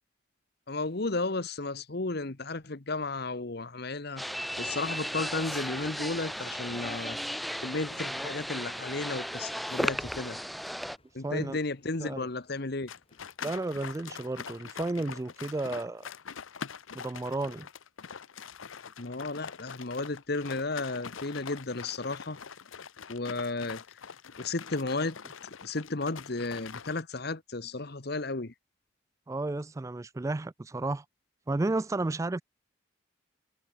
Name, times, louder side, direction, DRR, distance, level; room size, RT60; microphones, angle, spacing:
voice 1, 0.7-4.2 4.6-7.2 7.6-10.4 11.1-12.9 19.0-22.4 23.1-23.8 24.4-25.2 25.6-28.5, left 3 dB, 55° left, 1.2 m, -33 dB
sound 1, 4.2-11.0, equal, ahead, 0.8 m, -35 dB
sound 2, 4.9-14.3, left 2 dB, 30° left, 5.2 m, -63 dB
voice 2, 11.2-11.6 12.0-12.3 13.4-16.1 16.9-17.7 29.3-31.0 31.5-32.4, right 2 dB, 15° right, 0.3 m, -32 dB
sound 3, 12.9-27.0, left 6 dB, 85° left, 0.9 m, -44 dB
head